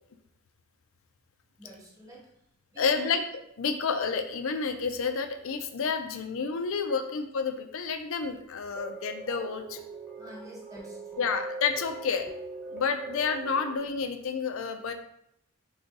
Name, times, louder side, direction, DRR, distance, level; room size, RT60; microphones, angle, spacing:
voice 1, 1.6-2.3 2.7-3.2 6.9-7.1 10.2-11.3, equal, 15° right, -3 dB, 1.2 m, -49 dB
voice 2, 2.8-3.2 3.6-9.8 11.2-12.3 12.7-14.9, left 5 dB, 65° left, 8 dB, 0.5 m, -30 dB
sound 1, 8.7-13.8, right 2 dB, ahead, 0.9 m, -41 dB
3.9 x 3.4 x 3.9 m, 0.75 s
head